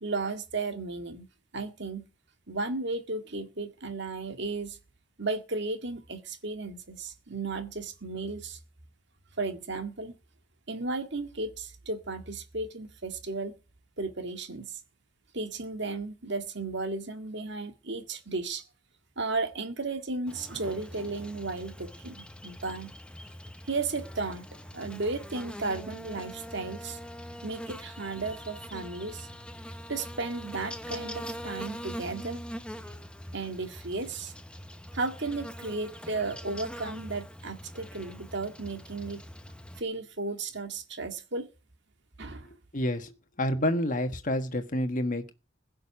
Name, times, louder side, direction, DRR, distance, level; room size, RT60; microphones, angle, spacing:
voice 1, 0.0-1.3 1.5-2.1 2.5-4.8 5.2-8.6 9.4-10.2 10.7-13.5 14.0-14.8 15.3-18.6 19.2-22.9 23.7-24.5 24.7-27.0 27.4-29.3 29.9-32.4 32.8-32.9 33.3-34.3 34.9-39.2 39.8-41.5 42.2-42.5, right 3 dB, 60° right, 2.0 m, -34 dB
Buzz, 20.3-39.8, equal, 5° left, 0.9 m, -43 dB
voice 2, 42.7-43.1 43.4-45.3, left 1 dB, 40° left, 1.5 m, -28 dB
16.0 x 6.6 x 9.8 m
head